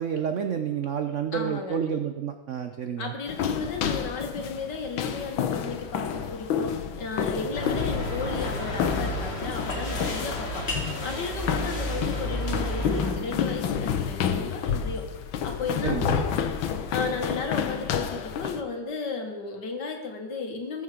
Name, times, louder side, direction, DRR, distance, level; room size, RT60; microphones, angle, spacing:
voice 1, 0.0-3.1 15.8-16.2, right 8 dB, 65° right, 7 dB, 0.7 m, -29 dB
voice 2, 1.3-1.8 3.0-10.8 11.0-15.1 15.4-16.3 16.9-20.8, left 4 dB, 65° left, 4 dB, 2.2 m, -34 dB
sound 1, 3.3-18.6, left 8 dB, 85° left, 1.7 m, -30 dB
sound 2, 7.5-13.1, equal, 35° left, 1.8 m, -31 dB
19.5 x 7.3 x 5.0 m, 1.1 s
omnidirectional pair, 2.1 m